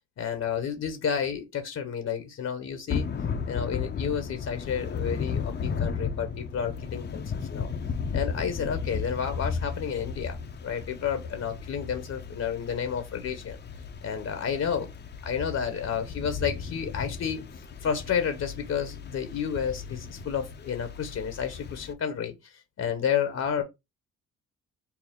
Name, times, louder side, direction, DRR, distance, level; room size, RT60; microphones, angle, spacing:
voice 1, 0.2-3.1 3.5-7.2 7.5-7.7 8.1-13.6 14.0-14.9 15.2-17.5 17.8-23.6, left 7 dB, 55° left, 0.9 m, -31 dB
Thunder / Rain, 2.9-21.9, left 6 dB, 35° left, 0.6 m, -35 dB
4.5 x 2.0 x 3.6 m
cardioid pair, 90°, 30 cm